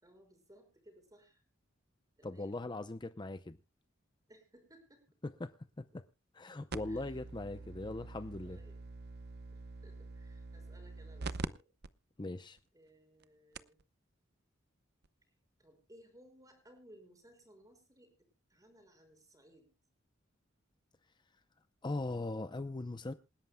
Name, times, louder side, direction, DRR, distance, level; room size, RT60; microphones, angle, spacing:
voice 1, 0.0-1.4 2.2-2.6 4.3-5.2 5.9-6.0 6.5-6.6 6.8-8.1 8.4-8.8 9.5-11.7 12.7-13.8 15.6-18.1 18.5-19.7, right 1 dB, 20° right, 5.3 m, -61 dB
voice 2, 2.2-3.6 5.4-6.0 6.3-8.6 12.2-12.6 21.8-23.1, left 2 dB, 25° left, 0.6 m, -40 dB
sound 1, 6.7-11.5 11.8-11.9 12.6-12.7 13.2-13.3 13.6-13.8 15.0-15.1, right 3 dB, 55° right, 0.7 m, -44 dB
27.5 x 11.0 x 2.2 m
head